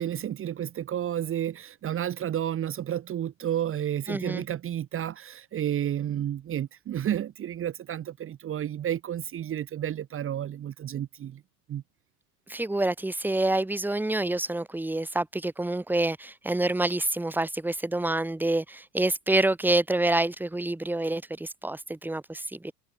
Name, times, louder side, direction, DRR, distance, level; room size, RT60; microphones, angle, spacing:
voice 1, 0.0-11.4 11.7-11.8, right 10 dB, 25° right, 2.4 m, -31 dB
voice 2, 4.1-4.4 12.5-22.7, right 2 dB, 5° right, 3.0 m, -27 dB
figure-of-eight pair, 90°, 50 cm